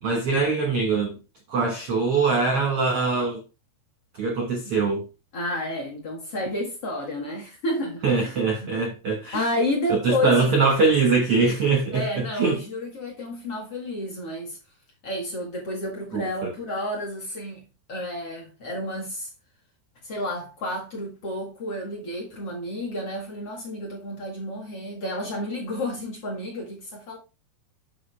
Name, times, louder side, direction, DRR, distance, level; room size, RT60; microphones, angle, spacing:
voice 1, 0.0-1.2 1.5-3.4 4.1-5.0 8.0-9.4 9.9-12.0 12.4-12.6 16.1-16.5, right 4 dB, 60° right, 1.5 m, -22 dB
voice 2, 5.3-8.3 8.6-8.7 9.3-10.7 11.9-14.6 15.0-19.3 20.0-27.2, left 1 dB, 45° left, 2.2 m, -31 dB
8.5 x 6.2 x 3.4 m
omnidirectional pair, 4.9 m